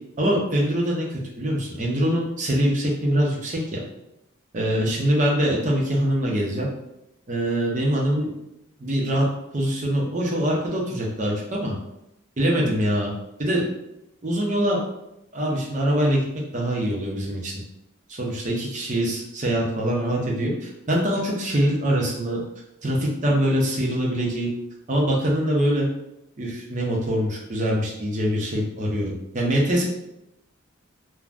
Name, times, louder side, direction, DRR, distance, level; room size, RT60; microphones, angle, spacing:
voice 1, 0.2-3.8 4.5-6.7 7.3-8.3 8.8-9.3 9.5-11.7 12.4-13.1 13.4-13.6 14.2-14.8 15.3-16.2 16.5-17.5 18.1-22.4 22.8-24.5 24.9-25.9 26.4-29.9, equal, 35° right, -2 dB, 0.6 m, -23 dB
3.4 x 2.1 x 2.5 m, 0.83 s
head